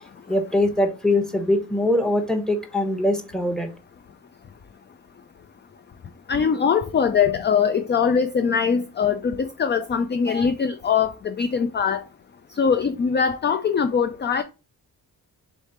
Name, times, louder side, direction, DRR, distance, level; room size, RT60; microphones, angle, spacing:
voice 1, 0.3-3.7, left 1 dB, ahead, 1.0 m, -22 dB
voice 2, 6.3-12.0 12.6-14.4, left 6 dB, 30° left, 0.4 m, -22 dB
3.2 x 3.2 x 4.3 m
cardioid pair, 65°, 38 cm